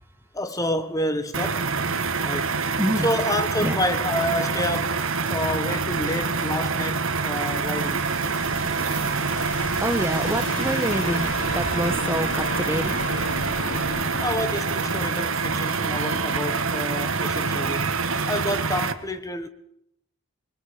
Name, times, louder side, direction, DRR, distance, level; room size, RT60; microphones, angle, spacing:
voice 1, 0.3-1.7 2.2-2.6 3.0-5.0 5.3-8.1 14.2-18.0 18.3-19.5, left 1 dB, 15° left, 1.2 m, -29 dB
sound 1, 1.3-18.9, right 4 dB, 75° right, 1.5 m, -26 dB
voice 2, 2.8-3.1 3.6-3.8 8.4-8.6 9.4-13.0, equal, 10° right, 1.2 m, -27 dB
sound 2, 7.2-14.6, left 2 dB, 70° left, 3.2 m, -35 dB
26.5 x 21.5 x 5.0 m
head